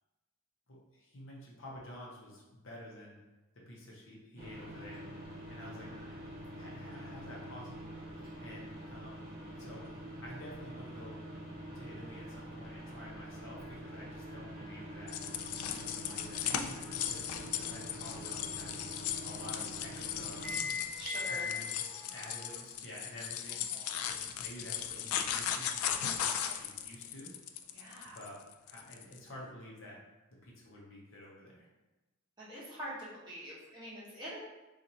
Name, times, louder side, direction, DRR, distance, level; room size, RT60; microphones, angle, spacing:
voice 1, 0.7-3.2 3.5-5.1 5.5-5.9 6.6-7.9 8.4-9.9 10.2-11.2 11.7-15.2 15.7-18.9 19.2-20.5 21.3-21.7 22.1-23.7 24.1-27.3 28.0-30.0 30.4-31.7, left 1 dB, 60° left, -3 dB, 0.8 m, -50 dB
sound 1, 4.4-21.6, left 1 dB, 45° right, 0.9 m, -44 dB
voice 2, 5.6-6.1 21.0-21.5 23.7-24.0 27.7-28.2 32.5-34.4, equal, 20° right, -8 dB, 1.0 m, -45 dB
sound 2, 11.5-22.6, equal, 40° left, 1.5 m, -58 dB
sound 3, 15.1-29.2, left 9 dB, 90° left, 0.3 m, -37 dB
2.9 x 2.5 x 3.9 m, 1.1 s
head